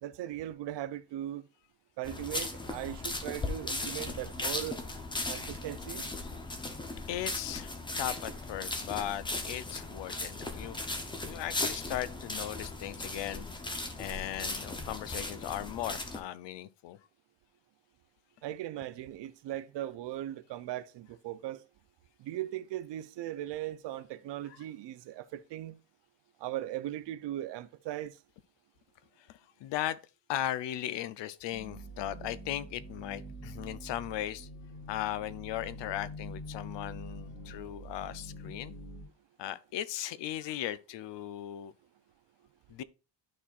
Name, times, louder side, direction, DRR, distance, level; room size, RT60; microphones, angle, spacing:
voice 1, 0.0-1.5 2.0-4.8 5.3-6.1 18.4-21.6 22.2-25.8 26.4-28.2, right 13 dB, 70° right, 0.6 m, -38 dB
sound 1, 2.0-16.2, left 2 dB, 10° left, 0.6 m, -37 dB
voice 2, 7.0-10.8 11.2-17.0 24.5-24.6 29.2-30.0 30.3-34.5 34.9-38.8 39.4-41.7 42.7-42.8, left 12 dB, 70° left, 0.6 m, -37 dB
sound 2, 31.5-39.0, equal, 30° left, 1.7 m, -45 dB
12.0 x 4.3 x 2.4 m
cardioid pair, 175°, 44 cm